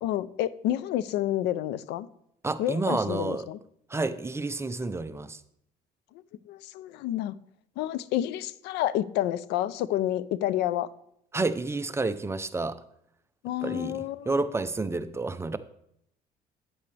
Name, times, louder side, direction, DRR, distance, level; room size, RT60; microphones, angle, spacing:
voice 1, 0.0-2.1 2.6-3.6 6.5-7.3 7.8-10.9 13.4-14.4, left 13 dB, 90° left, 0.5 m, -29 dB
voice 2, 2.4-3.5 3.9-5.4 11.3-12.8 13.6-15.6, right 3 dB, 15° right, 0.5 m, -30 dB
9.3 x 8.4 x 3.3 m
cardioid pair, 110°, 17 cm